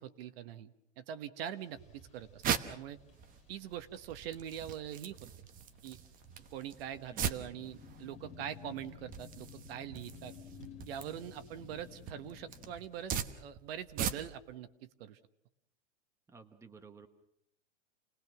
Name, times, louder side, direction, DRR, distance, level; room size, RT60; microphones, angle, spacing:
voice 1, 0.0-2.4 2.7-3.0 3.5-5.2 5.8-6.0 6.5-10.3 10.9-15.2, right 10 dB, 55° right, 10 dB, 1.4 m, -43 dB
sound 1, 1.5-12.8, left 8 dB, 20° left, 1.9 m, -56 dB
sound 2, 1.8-14.5, right 8 dB, 25° right, 1.0 m, -41 dB
voice 2, 7.1-7.7 16.3-17.1, right 5 dB, 10° right, 7 dB, 1.2 m, -55 dB
29.0 x 19.0 x 6.1 m, 0.77 s
hypercardioid pair, 145°, 36 cm